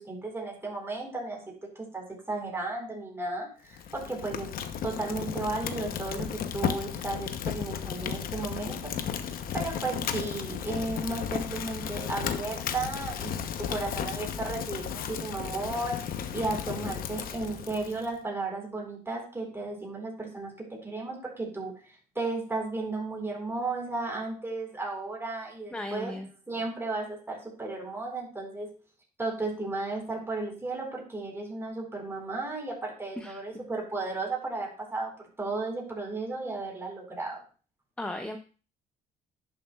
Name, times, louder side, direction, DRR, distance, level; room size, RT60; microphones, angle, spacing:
voice 1, 0.0-1.4 1.8-4.5 4.8-8.9 9.5-20.5 20.8-21.7 22.1-26.1 26.5-28.7 29.2-35.1 35.4-37.4, right 3 dB, 15° right, -1 dB, 4.4 m, -34 dB
Fire, 3.7-18.1, left 8 dB, 60° left, 0.9 m, -34 dB
voice 2, 25.7-26.3 33.2-33.6 38.0-38.4, left 1 dB, 5° left, 6 dB, 0.7 m, -36 dB
11.0 x 7.1 x 2.4 m, 0.37 s
cardioid pair, 110°, 17 cm